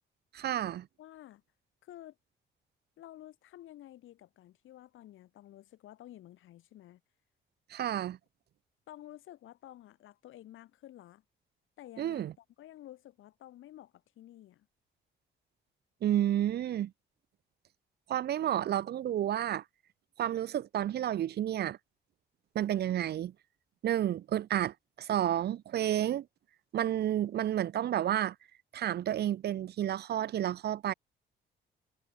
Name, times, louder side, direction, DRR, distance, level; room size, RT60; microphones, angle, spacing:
voice 1, 0.3-0.9 7.7-8.2 12.0-12.3 16.0-16.9 18.1-19.6 20.2-21.8 22.5-23.3 23.8-26.3 26.7-28.4 28.7-30.9, right 11 dB, 55° right, 0.5 m, -31 dB
voice 2, 1.0-1.4 1.8-2.2 3.0-7.0 8.9-11.2 11.8-14.7, left 13 dB, 80° left, 5.8 m, -52 dB
cardioid pair, 90°, 20 cm